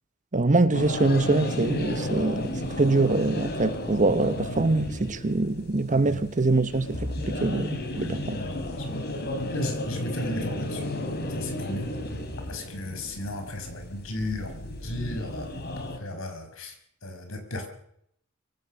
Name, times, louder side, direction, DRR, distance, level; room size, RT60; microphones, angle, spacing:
voice 1, 0.3-8.4, right 2 dB, 35° right, 1.0 m, -24 dB
sound 1, 0.7-16.0, left 1 dB, 50° left, 3.6 m, -33 dB
voice 2, 8.0-10.9 11.3-11.9 12.5-16.7 17.0-17.7, left 1 dB, 70° left, 5.8 m, -35 dB
23.5 x 17.0 x 6.5 m
head